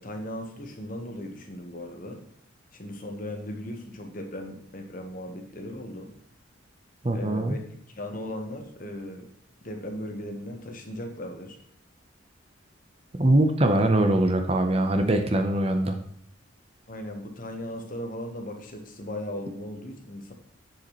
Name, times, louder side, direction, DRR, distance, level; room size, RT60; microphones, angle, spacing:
voice 1, 0.0-2.2 2.7-6.1 7.1-7.6 8.0-9.3 9.6-11.6 16.9-20.3, left 1 dB, 40° left, 4 dB, 1.2 m, -37 dB
voice 2, 7.0-7.6 13.2-16.0, right 1 dB, 30° right, 6 dB, 0.7 m, -22 dB
7.6 x 7.0 x 3.1 m, 0.68 s
head